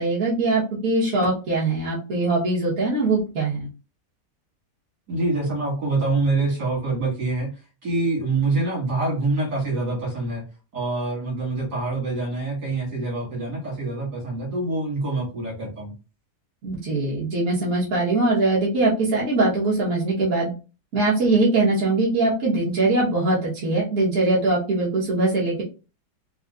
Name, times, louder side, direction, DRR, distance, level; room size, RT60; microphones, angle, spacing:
voice 1, 0.0-3.7 16.6-20.5 20.9-25.6, right 2 dB, 60° right, -6 dB, 1.7 m, -22 dB
voice 2, 5.1-7.5 7.8-10.4 10.7-15.9, right 2 dB, 80° right, -4 dB, 2.3 m, -25 dB
4.2 x 2.2 x 2.4 m, 0.32 s
omnidirectional pair, 1.7 m